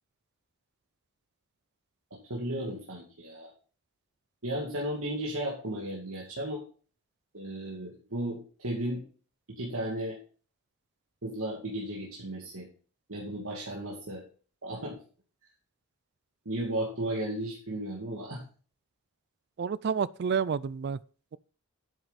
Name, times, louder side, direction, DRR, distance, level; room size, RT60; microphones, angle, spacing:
voice 1, 2.3-3.5 4.4-6.6 7.3-9.0 9.5-10.2 11.2-12.7 13.1-14.2 14.6-15.0 16.5-18.4, right 1 dB, 70° right, 2.4 m, -34 dB
voice 2, 19.6-21.0, right 6 dB, 50° right, 0.3 m, -29 dB
9.2 x 7.9 x 4.1 m
head